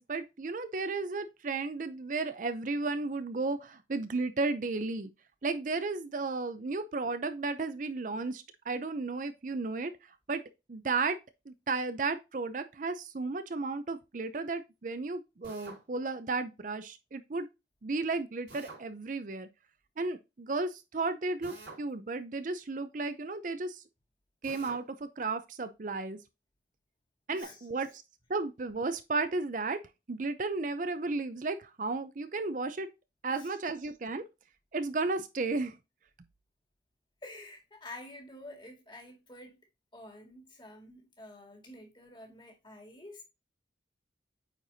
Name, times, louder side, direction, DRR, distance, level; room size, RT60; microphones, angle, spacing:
voice 1, 0.0-5.1 5.4-9.9 10.3-10.4 10.7-11.2 11.5-17.5 17.8-19.5 20.0-23.8 24.4-26.2 27.3-27.9 28.3-29.8 30.1-32.9 33.2-34.2 34.7-35.7, right 3 dB, 45° right, 0.5 m, -34 dB
Drill, 15.4-15.8 18.5-18.8 21.4-21.9 24.4-24.8, right 2 dB, 85° right, 4.1 m, -48 dB
voice 2, 27.3-27.7 33.3-33.6 37.2-39.6 39.9-43.2, left 1 dB, 25° left, 2.0 m, -49 dB
8.9 x 4.5 x 2.7 m
head